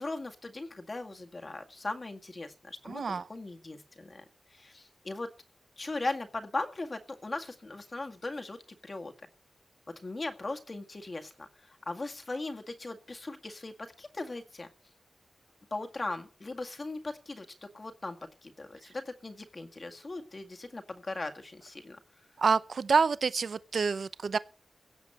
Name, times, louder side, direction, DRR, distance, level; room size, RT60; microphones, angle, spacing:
voice 1, 0.0-4.2 4.5-5.3 5.8-8.6 8.8-9.1 10.0-14.7 15.7-22.0, left 2 dB, 40° left, 1.9 m, -39 dB
voice 2, 2.9-3.2 22.4-24.4, right 5 dB, 75° right, 0.7 m, -27 dB
16.5 x 7.4 x 7.8 m
wide cardioid pair, 110°, 0 cm